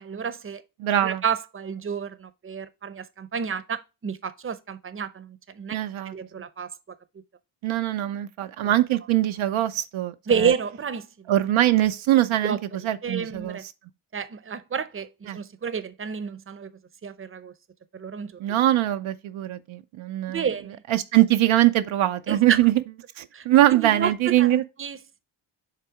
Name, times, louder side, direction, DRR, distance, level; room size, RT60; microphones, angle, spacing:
voice 1, 0.0-0.6 1.0-5.8 6.1-6.7 10.3-11.1 12.4-12.6 13.0-13.6 14.1-16.7 17.0-17.5 17.9-18.3 20.3-20.7 22.3-22.6 23.3-24.1 24.4-25.2, right 7 dB, 25° right, 0.7 m, -30 dB
voice 2, 0.8-1.2 5.7-6.1 7.6-10.5 11.3-13.7 15.3-15.4 18.4-20.5 20.9-22.8 23.2-24.6, right 14 dB, 70° right, 0.6 m, -22 dB
5.8 x 3.4 x 4.7 m
supercardioid pair, 55°, 50 cm